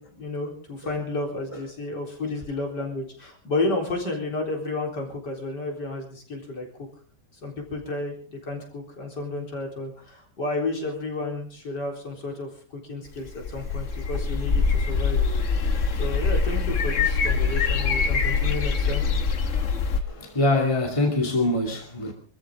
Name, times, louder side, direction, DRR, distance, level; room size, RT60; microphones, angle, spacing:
voice 1, 0.0-6.9 7.4-12.5 12.8-15.2 16.0-19.0, left 2 dB, 75° left, 1 dB, 4.6 m, -31 dB
sound 1, 13.3-20.0, left 5 dB, 50° left, 1.5 m, -24 dB
voice 2, 20.0-22.1, left 2 dB, 15° left, 2 dB, 2.5 m, -24 dB
26.0 x 14.0 x 3.7 m, 0.41 s
omnidirectional pair, 1.9 m